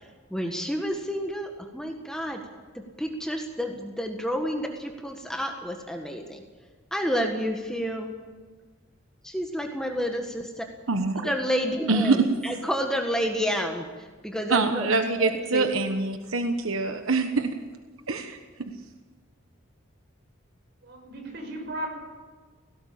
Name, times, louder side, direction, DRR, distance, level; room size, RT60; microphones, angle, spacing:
voice 1, 0.3-2.4 2.7-6.4 6.9-8.2 9.2-10.6 11.2-14.9 15.2-15.7, equal, 5° left, 3 dB, 1.6 m, -30 dB
voice 2, 10.9-11.3 11.9-12.4 14.5-17.5 18.1-18.7, right 3 dB, 85° right, 7 dB, 1.2 m, -25 dB
voice 3, 20.8-21.9, right 1 dB, 55° right, 2 dB, 6.2 m, -35 dB
17.5 x 17.5 x 8.7 m, 1.4 s
head